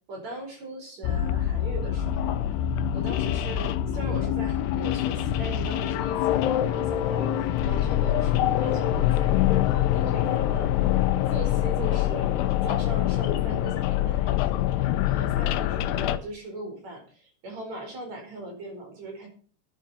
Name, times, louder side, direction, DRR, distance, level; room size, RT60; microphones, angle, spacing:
voice 1, 0.1-2.4 2.9-10.7 11.3-12.3 12.6-19.3, right 2 dB, 40° right, 2 dB, 5.8 m, -39 dB
sound 1, 1.0-16.2, left 12 dB, 85° left, 2.9 m, -25 dB
12.5 x 10.0 x 5.6 m, 0.42 s
omnidirectional pair, 4.9 m